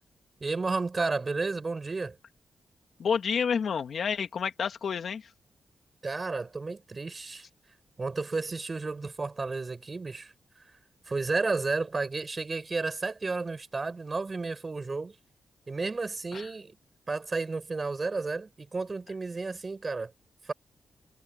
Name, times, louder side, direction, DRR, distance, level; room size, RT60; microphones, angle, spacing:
voice 1, 0.4-2.2 6.0-7.5 8.0-10.3 11.1-15.1 15.7-16.8 17.1-20.1 20.4-20.5, right 3 dB, 30° right, 6.0 m, -32 dB
voice 2, 3.0-5.2 16.3-16.5, left 6 dB, 65° left, 2.2 m, -29 dB
cardioid pair, 110°, 0 cm